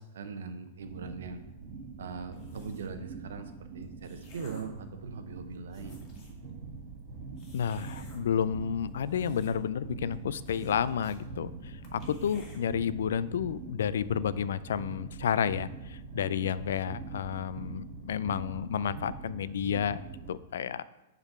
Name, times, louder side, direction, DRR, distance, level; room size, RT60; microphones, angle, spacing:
voice 1, 0.0-1.4 2.0-6.0, right 5 dB, 80° right, 8 dB, 0.8 m, -41 dB
sound 1, 0.8-20.3, right 4 dB, 40° right, 2.4 m, -43 dB
sound 2, 2.3-3.0 3.7-4.8 5.4-5.5 5.7-6.4 7.4-8.2 8.9-9.8 10.1-10.2 10.5-11.2 11.5-11.6 11.8-12.6, left 2 dB, 35° left, 1.7 m, -55 dB
voice 2, 7.5-20.0 20.3-20.8, left 8 dB, 80° left, 17 dB, 0.3 m, -31 dB
7.1 x 4.0 x 5.5 m, 1.0 s
hypercardioid pair, 145°, 0 cm